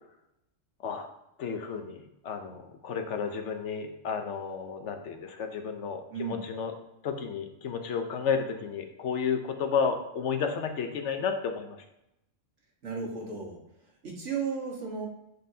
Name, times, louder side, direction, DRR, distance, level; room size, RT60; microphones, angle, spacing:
voice 1, 1.4-6.7 7.0-11.8, left 6 dB, 70° left, 6 dB, 1.0 m, -32 dB
voice 2, 12.8-13.6 14.0-15.1, right 5 dB, 75° right, -1 dB, 1.7 m, -34 dB
9.7 x 4.3 x 2.7 m, 0.83 s
omnidirectional pair, 1.3 m